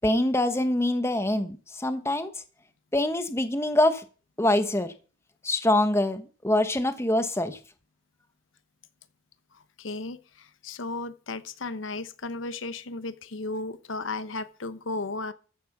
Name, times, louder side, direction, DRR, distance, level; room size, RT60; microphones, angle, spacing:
voice 1, 0.0-2.3 2.9-4.0 4.4-4.9 5.4-7.6, left 1 dB, 15° left, 1.0 m, -24 dB
voice 2, 9.5-15.3, left 3 dB, 85° left, 1.0 m, -35 dB
14.5 x 7.7 x 6.0 m
head